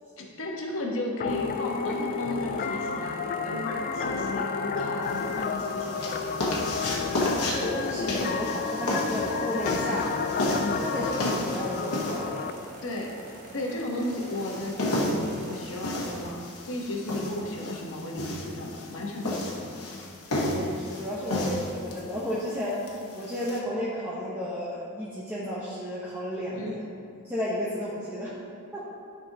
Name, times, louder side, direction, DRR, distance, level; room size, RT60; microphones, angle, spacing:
voice 1, 0.2-6.1 10.5-10.9 12.8-13.1 13.5-19.8 26.6-26.8, left 1 dB, 65° left, -1 dB, 1.1 m, -34 dB
sound 1, 1.2-12.5, left 5 dB, 40° left, 0.3 m, -31 dB
sound 2, 1.3-16.3, right 2 dB, 40° right, 0.6 m, -46 dB
sound 3, 5.0-23.6, left 1 dB, 85° left, 1.2 m, -32 dB
voice 2, 7.3-10.1 10.8-12.6 20.5-22.8 23.1-26.8 27.3-28.3, equal, 10° right, -9 dB, 1.0 m, -33 dB
11.0 x 5.2 x 2.9 m, 2.3 s
head